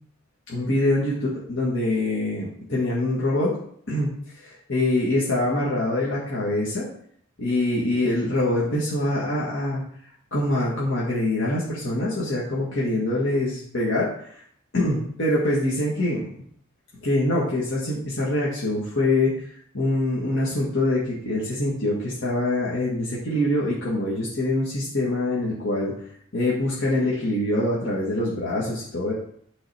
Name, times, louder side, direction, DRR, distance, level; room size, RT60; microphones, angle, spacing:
voice 1, 0.5-3.6 3.9-4.1 4.4-6.9 7.4-9.8 10.3-14.1 14.3-14.4 14.7-16.3 17.0-19.3 19.7-25.9 26.3-29.1, left 1 dB, 65° left, -6 dB, 1.8 m, -24 dB
11.5 x 3.9 x 4.3 m, 0.64 s
head